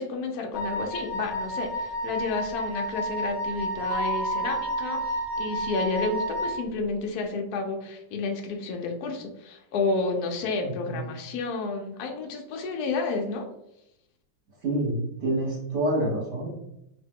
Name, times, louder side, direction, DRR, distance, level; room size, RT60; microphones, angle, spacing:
voice 1, 0.0-13.5, left 3 dB, 70° left, 2 dB, 0.9 m, -31 dB
Wind instrument woodwind instrument, 0.5-6.6, right 1 dB, 15° right, 1.1 m, -31 dB
Mallet percussion, 3.9-6.0, right 1 dB, 80° right, 0.5 m, -35 dB
voice 2, 10.6-11.0 14.6-16.5, right 1 dB, 40° right, -4 dB, 1.2 m, -27 dB
3.0 x 2.9 x 3.5 m, 0.82 s
omnidirectional pair, 2.3 m